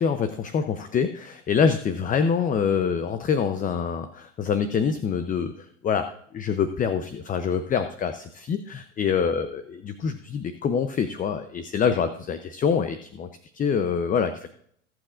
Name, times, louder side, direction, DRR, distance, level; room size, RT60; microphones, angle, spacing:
voice 1, 0.0-13.3 13.5-14.5, left 6 dB, 20° left, 9 dB, 0.7 m, -25 dB
19.0 x 7.7 x 2.6 m, 0.65 s
hypercardioid pair, 95°, 37 cm